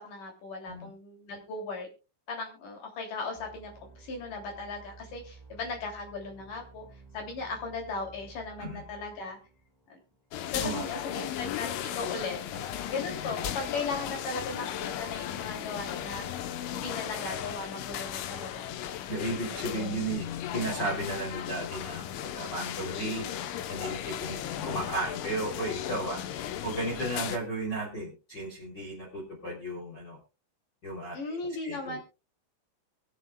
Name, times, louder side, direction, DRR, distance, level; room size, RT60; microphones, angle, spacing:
voice 1, 0.0-1.9 2.3-6.8 7.1-9.4 9.9-10.0 10.5-16.2 16.7-18.7 19.8-19.9 31.1-32.0, left 3 dB, 45° left, 1 dB, 4.2 m, -37 dB
sound 1, 3.4-10.9, right 4 dB, 5° right, 4.9 m, -53 dB
sound 2, 10.3-27.4, left 10 dB, 80° left, 3.3 m, -36 dB
voice 2, 19.1-20.2 20.5-23.2 23.7-26.2 26.6-30.2 30.8-31.4 31.6-32.0, right 2 dB, 25° left, -3 dB, 3.4 m, -34 dB
23.0 x 8.4 x 2.3 m, 0.30 s
omnidirectional pair, 5.5 m